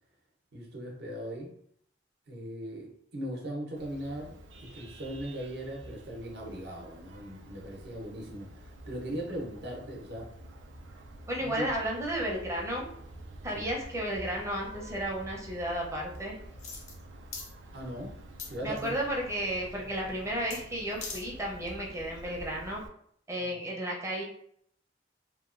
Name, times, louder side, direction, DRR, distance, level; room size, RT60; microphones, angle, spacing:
voice 1, 0.5-1.5 2.3-4.4 4.6-10.3 11.4-11.7 13.5-13.6 17.7-18.1 18.5-18.9 23.4-23.6, equal, 60° right, 0 dB, 0.7 m, -39 dB
Vehicle horn car horn honking, 3.8-22.9, right 1 dB, 80° right, 0.4 m, -48 dB
voice 2, 11.3-12.9 13.4-16.4 18.6-22.8 23.3-24.2, right 1 dB, 15° right, -2 dB, 0.6 m, -33 dB
sound 1, 16.6-17.0 17.3-17.5 18.4-19.0 20.5-20.6 20.9-21.2 21.7-21.8, left 5 dB, 40° left, 0.5 m, -41 dB
2.9 x 2.2 x 2.4 m, 0.66 s
head